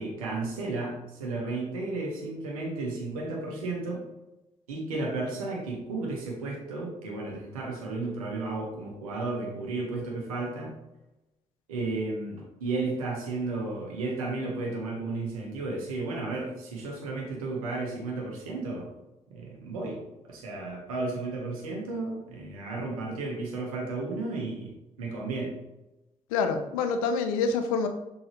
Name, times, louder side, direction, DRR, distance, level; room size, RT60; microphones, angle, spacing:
voice 1, 0.0-4.0 4.7-10.7 11.7-18.9 19.3-20.0 20.3-25.6, right 3 dB, 85° right, -1 dB, 1.3 m, -33 dB
voice 2, 26.3-27.9, left 4 dB, 80° left, 7 dB, 0.6 m, -26 dB
6.4 x 5.5 x 3.1 m, 0.97 s
hypercardioid pair, 45°, 18 cm